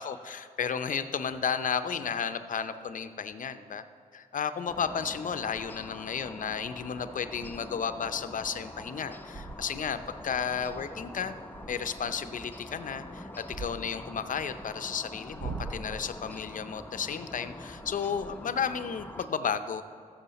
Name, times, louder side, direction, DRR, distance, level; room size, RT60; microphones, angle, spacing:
voice 1, 0.0-3.8 4.1-11.3 11.7-19.8, left 7 dB, 55° left, 11 dB, 0.6 m, -33 dB
sound 1, 1.8-1.9 5.5-5.8 6.3-6.6 6.9-7.0 7.3-7.7 8.2-8.3 8.8-9.0 9.3-12.2 12.9-14.7 15.2-16.3 17.7-18.7, right 4 dB, 50° right, 0.7 m, -44 dB
sound 2, 4.7-19.3, left 1 dB, 10° left, 0.7 m, -45 dB
13.5 x 7.3 x 4.1 m, 2.4 s
supercardioid pair, 50°, 16 cm